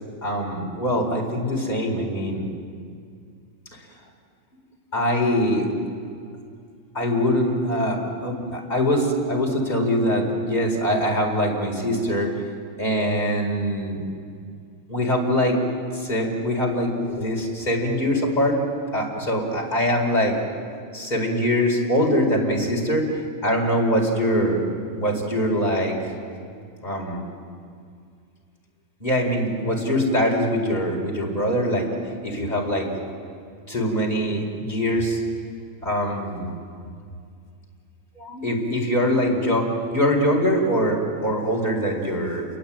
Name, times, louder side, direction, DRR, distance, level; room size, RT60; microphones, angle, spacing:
voice 1, 0.2-2.5 3.7-3.9 4.9-5.7 6.9-12.5 12.8-14.0 14.9-15.6 15.9-18.6 18.9-20.4 20.9-24.7 24.9-26.1 26.8-27.2 29.0-32.9 33.7-35.2 35.8-36.5 38.2-42.5, equal, 30° left, -1 dB, 4.7 m, -23 dB
29.0 x 22.0 x 9.0 m, 2.3 s
omnidirectional pair, 1.4 m